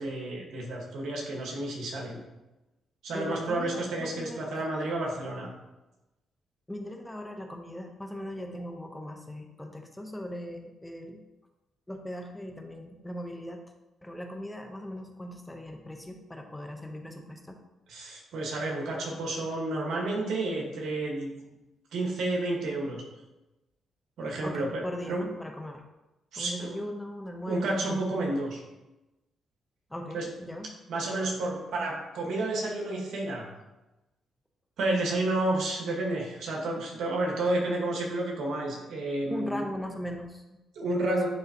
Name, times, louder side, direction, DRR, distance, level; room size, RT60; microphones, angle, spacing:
voice 1, 0.0-2.2 3.0-5.5 17.9-21.3 21.9-23.0 24.2-25.2 26.3-26.8 27.5-28.6 30.1-30.3 30.9-33.5 34.8-39.6 40.7-41.3, right 2 dB, 75° right, -1 dB, 1.5 m, -30 dB
voice 2, 3.1-4.5 6.7-11.2 11.9-13.6 14.0-17.6 24.4-25.8 26.3-28.2 29.9-30.7 39.3-41.2, left 1 dB, 10° left, 4 dB, 0.8 m, -39 dB
10.5 x 3.5 x 2.9 m, 1.0 s
cardioid pair, 70°, 0 cm